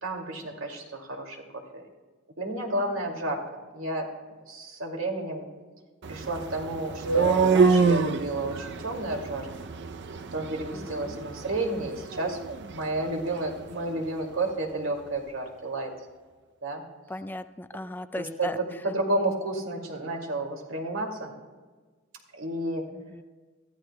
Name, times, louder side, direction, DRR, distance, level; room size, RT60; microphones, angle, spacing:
voice 1, 0.0-1.8 2.4-3.4 3.7-4.1 4.5-5.4 6.1-9.7 10.3-12.4 12.7-15.9 16.6-16.8 18.2-21.3 22.3-22.8, right 2 dB, 90° right, 1 dB, 2.3 m, -31 dB
sound 1, 6.0-14.0, right 5 dB, 60° right, 0.6 m, -27 dB
voice 2, 10.7-11.2 17.1-18.6 22.9-23.2, left 1 dB, 10° left, 12 dB, 0.3 m, -37 dB
23.0 x 14.0 x 2.2 m, 1.4 s
head